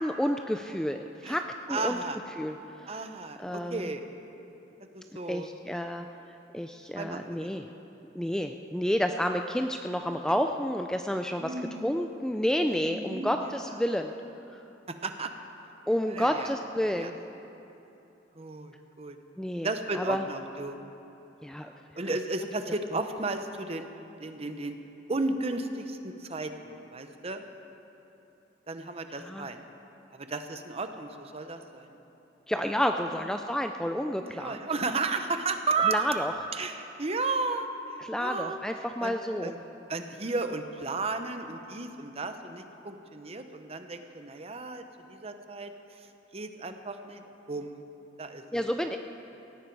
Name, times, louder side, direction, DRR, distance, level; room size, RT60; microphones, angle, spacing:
voice 1, 0.0-2.0 2.4-3.0 3.4-3.9 5.3-6.1 6.5-7.6 8.2-11.5 11.8-14.1 14.5-14.6 15.9-17.2 19.4-19.7 19.9-20.3 21.4-21.7 29.1-29.5 32.5-34.6 35.9-36.3 38.0-39.5 48.5-49.0, equal, 5° left, 5 dB, 0.4 m, -30 dB
voice 2, 1.7-2.2 2.9-4.0 4.9-5.5 7.0-7.6 11.4-11.9 12.8-13.3 14.9-15.3 16.1-16.5 16.8-17.1 18.4-19.2 19.6-20.8 22.0-23.9 24.2-24.8 25.1-27.4 28.7-29.6 30.1-31.9 33.1-33.2 34.1-36.1 36.6-37.7 38.2-38.6 39.0-39.1 39.4-39.6 39.9-44.8 45.1-45.7 46.3-47.2 47.5-47.8 48.2-48.6, right 3 dB, 35° right, 7 dB, 0.9 m, -33 dB
17.5 x 16.5 x 4.7 m, 3.0 s
head